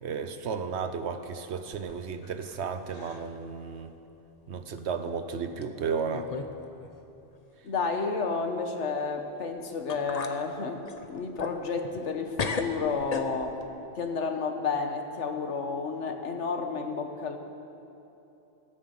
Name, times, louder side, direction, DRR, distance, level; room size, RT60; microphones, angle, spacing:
voice 1, 0.0-3.9 4.5-6.3, right 5 dB, 70° right, 9 dB, 1.1 m, -33 dB
sound 1, 1.7-2.6 2.9-3.4 3.8-3.9 4.8-4.9 5.6-5.7 6.1-6.5 6.8-6.9 9.4-9.5 9.9-10.4 10.9-12.1 12.4-13.7, left 4 dB, 40° left, 0.8 m, -36 dB
voice 2, 7.6-10.8 11.1-13.5 13.9-17.4, left 4 dB, 80° left, 6 dB, 1.4 m, -31 dB
14.0 x 10.0 x 7.6 m, 3.0 s
omnidirectional pair, 1.2 m